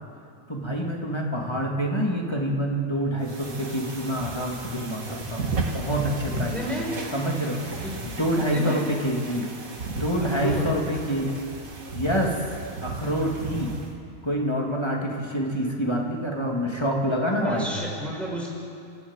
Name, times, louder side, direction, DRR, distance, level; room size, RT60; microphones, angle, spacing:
voice 1, 0.5-6.8 7.1-7.6 8.0-9.5 9.9-11.3 11.9-12.4 12.8-13.7 14.2-17.7, equal, 20° left, -1 dB, 2.5 m, -27 dB
sound 1, 3.2-13.9, right 3 dB, 85° right, 2.6 m, -34 dB
voice 2, 6.3-6.9 7.8-7.9 8.5-8.8 10.3-10.7 17.4-18.5, equal, ahead, -4 dB, 6.5 m, -31 dB
28.5 x 13.5 x 9.0 m, 2.4 s
omnidirectional pair, 1.4 m